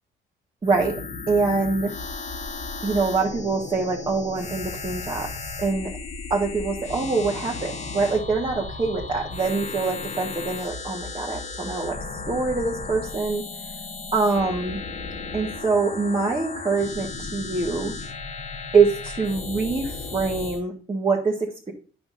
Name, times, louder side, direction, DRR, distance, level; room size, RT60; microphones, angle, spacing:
sound 1, 0.6-20.6, left 4 dB, 35° left, 1.4 m, -35 dB
voice 1, 0.6-1.0 1.3-1.9 2.8-5.3 5.6-5.9 6.3-12.0 12.3-13.4 14.1-14.8 15.3-17.9 18.7-21.7, right 4 dB, 25° right, -3 dB, 1.7 m, -24 dB
9.7 x 5.9 x 2.6 m, 0.38 s
cardioid pair, 90°, 20 cm